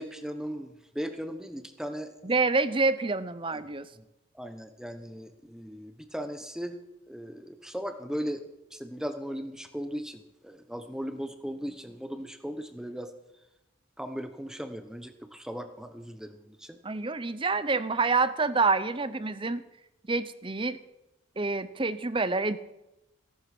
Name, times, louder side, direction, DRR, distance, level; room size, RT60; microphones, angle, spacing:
voice 1, 0.0-2.1 3.5-3.6 4.0-4.1 4.3-6.8 7.1-8.4 8.7-13.1 14.0-16.8, equal, 5° right, 8 dB, 1.0 m, -37 dB
voice 2, 2.2-3.9 16.8-19.6 20.1-20.8 21.4-22.6, right 3 dB, 25° right, 14 dB, 0.7 m, -27 dB
17.0 x 11.5 x 6.0 m, 0.94 s
head